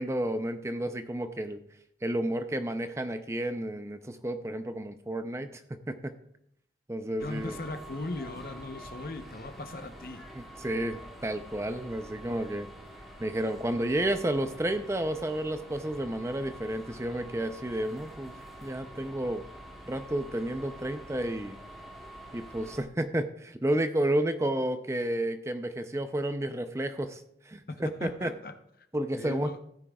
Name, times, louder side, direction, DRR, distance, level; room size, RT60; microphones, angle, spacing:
voice 1, 0.0-1.6 2.0-6.1 6.9-7.6 10.4-12.7 13.2-18.3 18.6-19.5 19.9-21.6 22.3-28.3 28.9-29.6, right 1 dB, 15° right, 0.5 m, -31 dB
voice 2, 7.2-10.3 27.7-28.5 29.2-29.6, left 2 dB, 55° left, 0.8 m, -38 dB
sound 1, 7.2-22.8, right 1 dB, ahead, 2.3 m, -47 dB
15.0 x 9.5 x 2.3 m
head